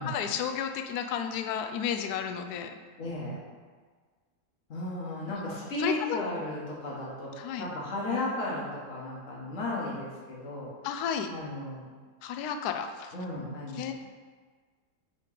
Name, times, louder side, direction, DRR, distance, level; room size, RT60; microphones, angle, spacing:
voice 1, 0.0-2.7 5.3-5.4 5.8-6.2 7.4-7.7 10.8-11.3 12.2-13.1 13.8-13.9, left 8 dB, 70° left, 6 dB, 1.0 m, -32 dB
voice 2, 3.0-3.4 4.7-10.7 11.3-11.9 13.1-13.9, left 2 dB, 45° left, -5 dB, 1.8 m, -35 dB
8.4 x 3.3 x 5.0 m, 1.5 s
omnidirectional pair, 1.9 m